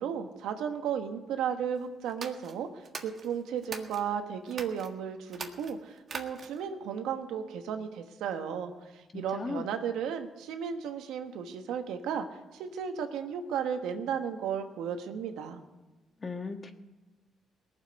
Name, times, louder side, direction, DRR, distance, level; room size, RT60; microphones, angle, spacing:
voice 1, 0.0-15.6, right 7 dB, 90° right, 6 dB, 1.3 m, -34 dB
sound 1, 2.1-4.1 4.5-4.9 5.3-6.7, right 4 dB, 40° right, 1.7 m, -42 dB
voice 2, 9.1-9.7 16.2-16.7, left 4 dB, 35° left, 6 dB, 1.5 m, -37 dB
18.5 x 7.4 x 9.5 m, 1.2 s
cardioid pair, 90°, 0 cm